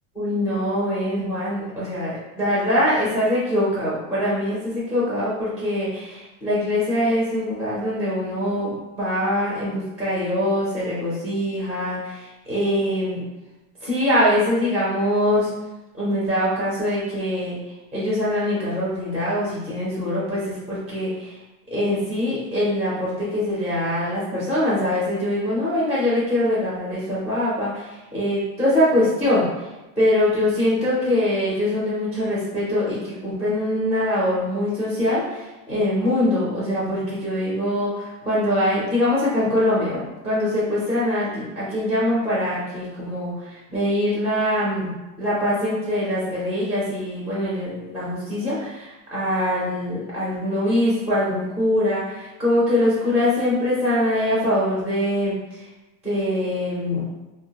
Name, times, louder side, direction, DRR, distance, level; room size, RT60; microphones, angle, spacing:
voice 1, 0.1-13.2 13.8-15.5 15.9-17.6 17.9-21.4 21.7-29.7 30.0-55.7 56.0-57.1, left 1 dB, 5° right, -8 dB, 0.4 m, -23 dB
2.3 x 2.1 x 2.7 m, 1.0 s
supercardioid pair, 135°, 46 cm